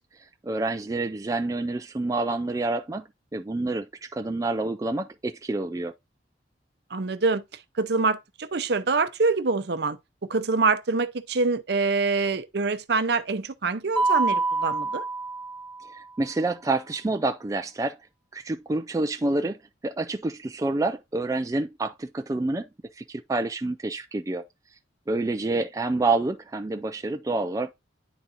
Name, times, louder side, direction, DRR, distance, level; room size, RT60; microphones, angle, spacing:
voice 1, 0.4-5.9 15.9-18.0 18.3-19.6 19.8-22.7 22.9-24.4 25.1-27.7, right 2 dB, 20° right, 0.3 m, -28 dB
voice 2, 6.9-7.4 7.8-10.0 10.3-15.1, right 4 dB, 60° right, 0.6 m, -25 dB
Mallet percussion, 14.0-16.0, right 3 dB, 10° left, 1.1 m, -26 dB
10.0 x 4.1 x 2.5 m
head